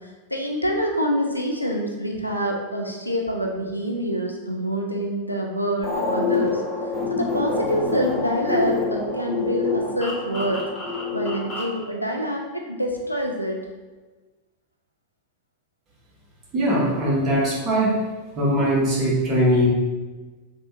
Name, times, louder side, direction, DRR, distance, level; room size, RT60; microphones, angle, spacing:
voice 1, 0.0-6.6 7.1-10.7 11.1-13.6, equal, 90° left, 1 dB, 0.4 m, -26 dB
sound 1, 5.8-11.8, left 4 dB, 25° left, 0.9 m, -26 dB
voice 2, 16.5-18.0 18.4-19.7, equal, 30° right, -5 dB, 1.0 m, -20 dB
3.2 x 2.1 x 2.9 m, 1.3 s
figure-of-eight pair, 90°, 0 cm